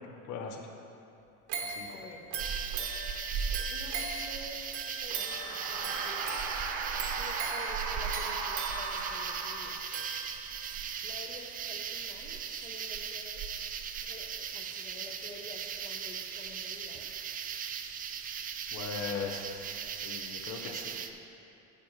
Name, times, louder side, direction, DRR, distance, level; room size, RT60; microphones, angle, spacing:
voice 1, 0.1-0.7 1.6-1.9 18.7-19.8 20.0-21.0, left 5 dB, 50° left, 2 dB, 1.0 m, -39 dB
sound 1, 1.5-10.8 11.2-11.3, right 4 dB, 55° right, 1.6 m, -40 dB
voice 2, 1.8-2.2 3.7-6.3 7.1-9.8 11.0-13.4 14.0-17.0, left 2 dB, 20° left, 2 dB, 1.0 m, -49 dB
sound 2, 2.4-21.1, right 7 dB, 25° right, 0.4 m, -38 dB
sound 3, 5.1-10.2, right 4 dB, 85° right, 1.0 m, -37 dB
11.0 x 8.3 x 3.2 m, 2.8 s
supercardioid pair, 120°, 36 cm